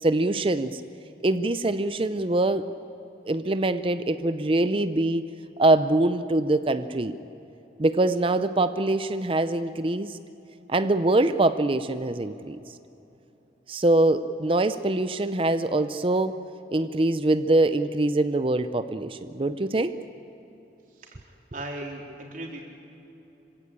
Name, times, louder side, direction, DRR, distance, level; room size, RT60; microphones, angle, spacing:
voice 1, 0.0-0.8 1.2-2.7 3.3-5.2 5.6-7.1 7.8-10.1 10.7-12.6 13.7-16.4 16.7-19.9, right 2 dB, 30° right, 11 dB, 0.6 m, -23 dB
voice 2, 21.0-22.7, right 1 dB, 50° right, -1 dB, 4.0 m, -38 dB
26.0 x 16.5 x 8.8 m, 3.0 s
head